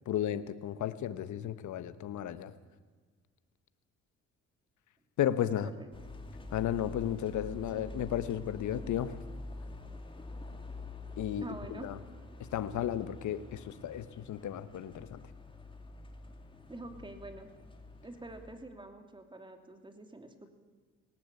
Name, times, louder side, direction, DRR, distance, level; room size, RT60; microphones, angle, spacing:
voice 1, 0.1-2.5 5.2-5.7 6.5-9.2 11.2-12.0 12.4-15.2, left 10 dB, 75° left, 13 dB, 1.2 m, -34 dB
voice 2, 5.4-5.9 7.7-8.0 11.4-11.9 16.7-17.5 18.0-20.5, right 2 dB, 15° right, 6 dB, 2.9 m, -47 dB
sound 1, 5.9-18.6, left 2 dB, 15° left, 2.8 m, -47 dB
19.0 x 18.5 x 8.5 m, 1.4 s
cardioid pair, 90°, 30 cm